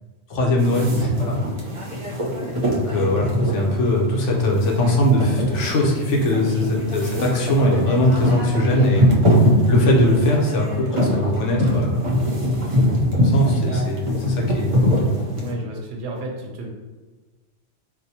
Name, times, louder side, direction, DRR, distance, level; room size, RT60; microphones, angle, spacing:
voice 1, 0.3-1.4 2.7-9.1 9.6-12.0 13.0-15.0, left 1 dB, 70° left, -1 dB, 1.0 m, -21 dB
sound 1, 0.6-15.5, equal, 40° right, 0.4 m, -22 dB
voice 2, 15.4-16.7, right 2 dB, 75° right, 0 dB, 1.0 m, -31 dB
4.2 x 2.1 x 2.7 m, 1.2 s
omnidirectional pair, 1.3 m